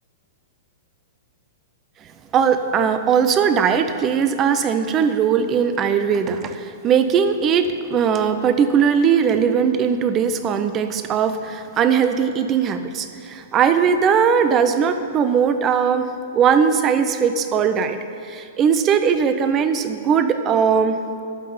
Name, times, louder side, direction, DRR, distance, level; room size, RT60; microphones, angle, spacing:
voice 1, 2.3-18.0 18.3-21.0, right 7 dB, 25° right, 9 dB, 0.7 m, -19 dB
12.0 x 5.8 x 8.5 m, 2.6 s
hypercardioid pair, 150°, 0 cm